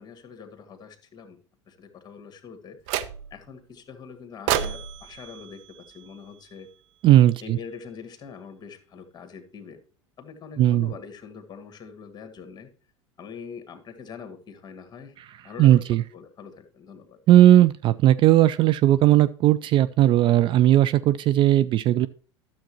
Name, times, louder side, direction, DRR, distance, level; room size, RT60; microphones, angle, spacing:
voice 1, 0.0-1.4 1.7-2.8 3.3-6.7 7.4-9.8 10.2-12.7 13.2-15.1 15.4-17.2, left 6 dB, 25° left, 6 dB, 1.8 m, -43 dB
sound 1, 2.9-3.5 4.5-6.7, right 10 dB, 50° right, 0.8 m, -31 dB
voice 2, 7.0-7.6 10.6-10.9 15.6-16.0 17.3-22.1, right 13 dB, 35° right, 13 dB, 0.4 m, -17 dB
12.5 x 7.1 x 2.9 m, 0.42 s
figure-of-eight pair, 80°, 15 cm